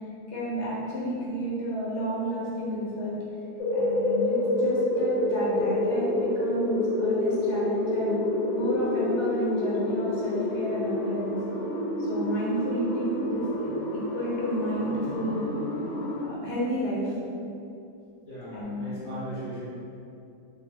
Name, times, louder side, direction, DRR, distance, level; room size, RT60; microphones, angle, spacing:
voice 1, 0.3-3.2 3.7-8.2 8.5-11.4 12.0-15.5 16.3-17.1 18.5-18.9, equal, 50° left, -7 dB, 1.2 m, -31 dB
sound 1, 3.6-16.3, left 1 dB, 70° left, 1.0 m, -28 dB
voice 2, 18.2-19.7, right 1 dB, 20° right, -15 dB, 1.4 m, -38 dB
3.4 x 2.6 x 3.6 m, 2.6 s
omnidirectional pair, 1.7 m